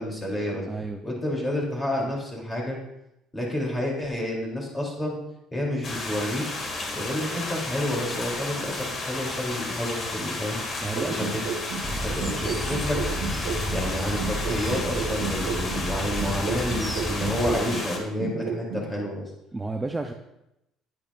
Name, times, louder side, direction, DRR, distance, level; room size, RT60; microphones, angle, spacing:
voice 1, 0.0-0.6 1.0-2.8 3.3-5.2 5.5-6.4 6.9-11.4 11.8-13.0 13.7-19.3, left 1 dB, 15° left, -2 dB, 3.0 m, -30 dB
voice 2, 0.7-1.0 10.8-11.2 19.5-20.1, right 3 dB, 15° right, 4 dB, 0.5 m, -31 dB
sound 1, 5.8-18.0, left 2 dB, 40° left, 1.7 m, -33 dB
sound 2, 11.0-13.9 14.2-17.9 18.2-18.9, right 5 dB, 75° right, 1.1 m, -32 dB
sound 3, 11.8-17.6, equal, ahead, 1.0 m, -32 dB
9.8 x 9.6 x 2.5 m, 0.87 s
cardioid pair, 115°, 0 cm